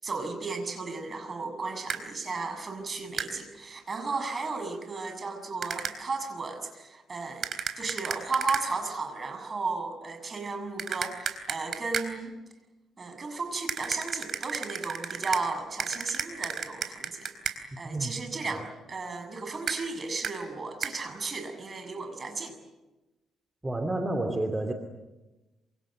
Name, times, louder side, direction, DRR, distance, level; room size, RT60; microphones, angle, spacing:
voice 1, 0.0-7.5 7.8-12.4 13.0-17.3 17.8-22.6, right 4 dB, 35° right, 7 dB, 6.9 m, -34 dB
sound 1, 1.9-2.0 3.2-3.3 5.6-6.0 7.4-8.7 10.8-12.1 13.7-15.4 15.8-17.6 19.7-19.8 20.2-20.4 20.8-20.9, right 7 dB, 55° right, 4.0 m, -33 dB
voice 2, 23.6-24.7, right 2 dB, 15° right, 6 dB, 2.7 m, -30 dB
27.5 x 26.0 x 7.9 m, 1.1 s
cardioid pair, 90°, 0 cm